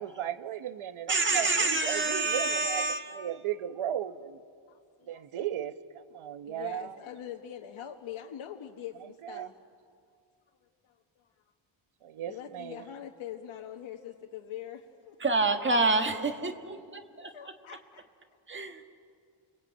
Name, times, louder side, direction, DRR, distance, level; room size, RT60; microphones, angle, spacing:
voice 1, 0.0-4.4 5.1-7.0 9.2-9.5 12.0-12.8, right 10 dB, 75° right, 12 dB, 1.1 m, -36 dB
voice 2, 1.1-3.3 15.2-17.3 18.5-18.8, right 3 dB, 25° right, 6 dB, 1.5 m, -28 dB
voice 3, 4.7-5.2 6.4-9.5 10.8-11.3 12.2-15.2 17.2-18.0, left 10 dB, 70° left, 1 dB, 1.4 m, -43 dB
29.5 x 21.5 x 8.8 m, 2.2 s
wide cardioid pair, 180°, 50 cm